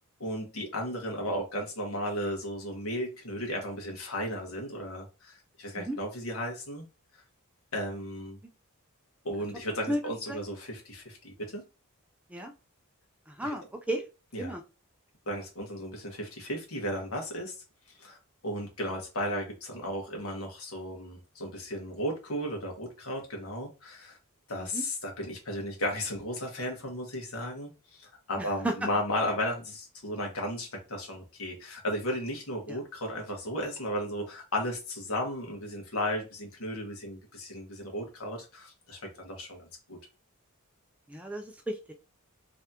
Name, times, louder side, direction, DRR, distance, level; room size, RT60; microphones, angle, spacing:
voice 1, 0.2-6.8 7.7-8.4 9.2-11.6 13.4-13.5 14.3-14.6 15.3-17.5 18.0-18.2 18.4-24.2 24.5-27.7 28.0-40.0, equal, 65° left, 1.5 m, -35 dB
voice 2, 13.3-14.0 14.4-14.6 24.6-24.8 28.4-28.8 32.7-32.8 41.1-41.9, right 1 dB, 5° right, 0.4 m, -33 dB
3.6 x 3.3 x 2.8 m
head